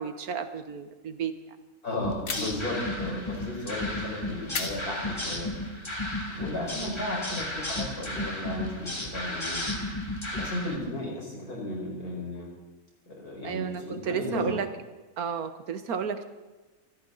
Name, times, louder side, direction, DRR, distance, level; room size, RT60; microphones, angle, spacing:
voice 1, 0.0-1.3 13.4-14.7 15.2-16.2, right 6 dB, 80° right, 9 dB, 1.6 m, -32 dB
voice 2, 1.8-5.5 6.3-9.6 10.3-12.5 13.1-14.6, left 1 dB, 85° left, -2 dB, 5.5 m, -34 dB
sound 1, 2.0-10.8, left 1 dB, 20° left, 2.2 m, -34 dB
sound 2, 2.3-2.8 4.5-5.5, left 5 dB, 65° left, 1.8 m, -37 dB
26.0 x 14.0 x 4.0 m, 1.2 s
omnidirectional pair, 1.5 m